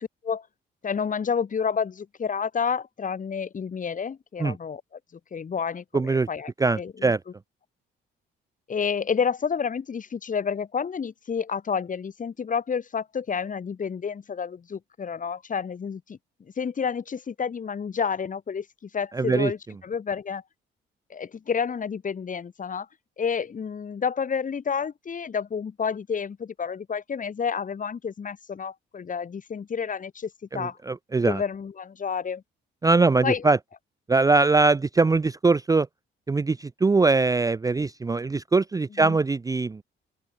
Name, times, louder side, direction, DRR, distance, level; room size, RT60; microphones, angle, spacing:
voice 1, 0.8-4.8 5.3-7.1 8.7-19.6 19.8-20.4 21.1-22.9 23.2-30.8 31.2-32.4 33.2-33.4 39.0-39.2, left 6 dB, 40° left, 2.4 m, -30 dB
voice 2, 5.9-6.3 6.6-7.2 19.1-19.5 30.5-31.4 32.8-33.6 34.1-35.9 36.3-39.8, right 3 dB, 15° right, 0.5 m, -22 dB
open air
cardioid pair, 90°, 20 cm